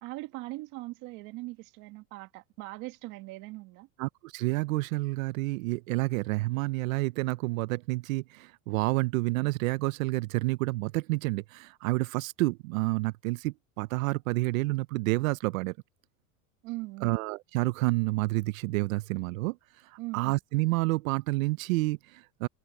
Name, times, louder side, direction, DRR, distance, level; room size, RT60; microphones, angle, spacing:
voice 1, 0.0-3.9 16.6-17.2 20.0-20.4, right 21 dB, 45° right, 1.9 m, -40 dB
voice 2, 4.0-15.7 17.0-19.6 20.1-22.5, right 22 dB, 65° right, 0.5 m, -29 dB
supercardioid pair, 155°, 43 cm